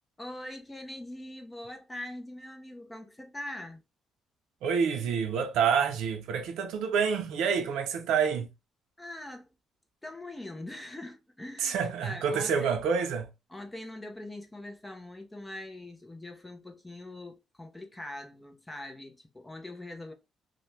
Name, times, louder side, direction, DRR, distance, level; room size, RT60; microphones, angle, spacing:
voice 1, 0.2-3.8 9.0-9.5 10.0-11.7 12.0-12.7 13.5-20.1, left 1 dB, 15° left, 0.7 m, -42 dB
voice 2, 4.6-8.5 11.6-13.3, right 6 dB, 85° right, 0.6 m, -28 dB
2.5 x 2.2 x 3.2 m
cardioid pair, 90°, 0 cm